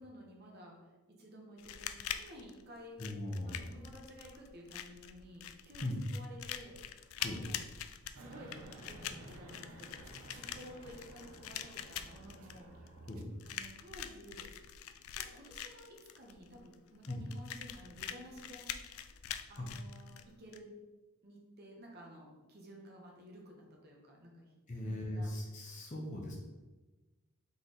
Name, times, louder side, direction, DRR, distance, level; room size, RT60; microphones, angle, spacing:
voice 1, 0.0-3.0 3.5-7.7 8.2-10.1 10.4-12.9 13.4-14.5 15.1-18.7 19.5-20.8 21.2-24.5 24.8-25.3, equal, 45° right, 0 dB, 0.9 m, -53 dB
sound 1, 1.6-20.6, left 10 dB, 70° left, 0.3 m, -45 dB
voice 2, 3.0-3.8 5.8-6.0 7.2-7.4 13.1-13.3 17.1-17.2 19.6-19.7 24.7-26.3, left 1 dB, 35° left, -3 dB, 0.8 m, -39 dB
sound 2, 8.1-13.2, right 2 dB, 75° right, 0.6 m, -53 dB
4.0 x 3.2 x 4.0 m, 1.2 s
head